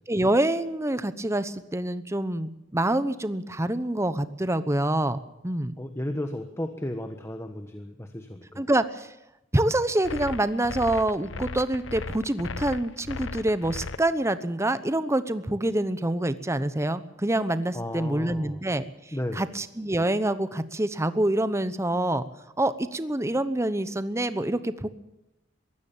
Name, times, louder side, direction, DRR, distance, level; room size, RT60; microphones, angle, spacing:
voice 1, 0.1-5.2 5.4-5.7 8.6-9.1 9.5-22.2 22.6-24.9, right 1 dB, 15° right, 12 dB, 0.9 m, -26 dB
voice 2, 5.8-8.7 17.7-18.6 19.1-19.4, left 1 dB, 15° left, 6 dB, 1.3 m, -34 dB
sound 1, 10.0-14.0, left 3 dB, 90° left, 0.9 m, -36 dB
22.5 x 16.5 x 7.3 m, 0.92 s
head